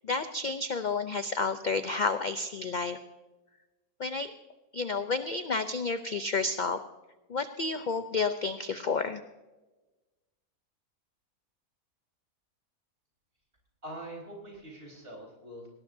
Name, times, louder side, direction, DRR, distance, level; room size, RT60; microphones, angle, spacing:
voice 1, 0.0-3.0 4.0-4.3 4.7-6.8 7.3-9.2, left 4 dB, 60° left, 10 dB, 0.5 m, -30 dB
voice 2, 13.8-15.7, right 1 dB, 40° right, -1 dB, 4.9 m, -43 dB
19.0 x 18.0 x 2.7 m, 1.2 s
omnidirectional pair, 1.5 m